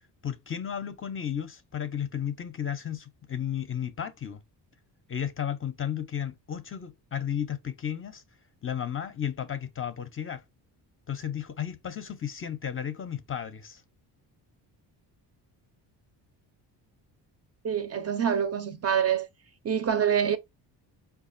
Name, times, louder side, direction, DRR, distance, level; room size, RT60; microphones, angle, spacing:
voice 1, 0.2-4.4 5.1-8.2 8.6-10.4 11.1-13.8, left 9 dB, 30° left, 0.5 m, -33 dB
voice 2, 17.6-19.3 19.6-20.4, right 8 dB, 35° right, 0.5 m, -26 dB
4.8 x 2.4 x 2.5 m
cardioid pair, 110°, 43 cm